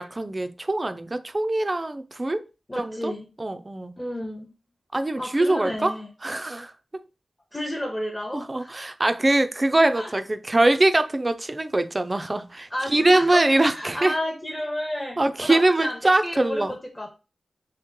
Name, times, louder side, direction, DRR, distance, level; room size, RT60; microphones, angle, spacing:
voice 1, 0.0-2.5 2.8-3.1 3.4-4.0 4.9-5.9 6.2-7.0 8.3-14.2 15.2-16.8, right 2 dB, 25° right, 0.4 m, -23 dB
voice 2, 2.7-3.3 4.0-4.5 5.2-6.1 7.5-8.8 10.0-10.1 12.7-17.1, left 1 dB, 15° left, 0.6 m, -31 dB
3.2 x 2.9 x 3.6 m
wide cardioid pair, 110°, 0 cm